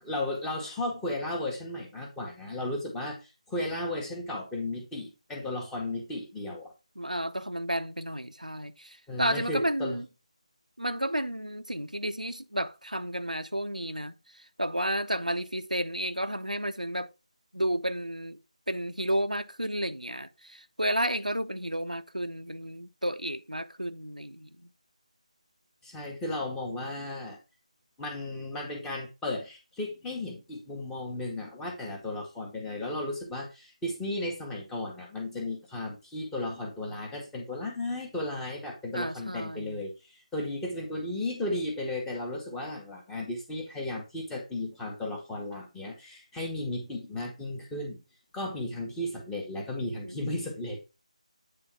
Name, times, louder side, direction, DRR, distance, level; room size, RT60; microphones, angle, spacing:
voice 1, 0.0-6.7 9.1-10.0 25.8-27.4 28.0-48.0 48.3-50.8, left 1 dB, 5° left, 1.0 m, -35 dB
voice 2, 7.0-10.0 10.8-14.1 14.6-17.1 17.5-18.4 18.7-24.7 38.9-39.8 50.0-50.2, right 1 dB, 90° right, 0.8 m, -32 dB
8.7 x 3.5 x 4.4 m
figure-of-eight pair, 160°, 4 cm